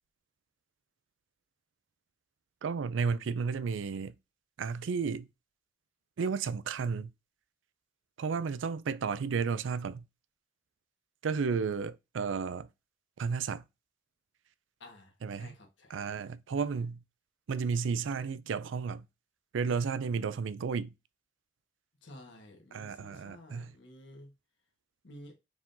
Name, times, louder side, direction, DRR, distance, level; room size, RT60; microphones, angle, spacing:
voice 1, 2.6-4.1 4.6-5.3 6.2-7.1 8.2-10.0 11.2-12.7 13.2-13.6 15.2-15.5 15.9-17.0 17.5-19.0 19.5-20.9 22.7-23.7, right 5 dB, 90° right, 0.4 m, -32 dB
voice 2, 14.8-16.1 16.5-16.8 22.0-24.3 25.0-25.3, left 1 dB, 70° left, 1.4 m, -52 dB
4.9 x 3.7 x 2.6 m
head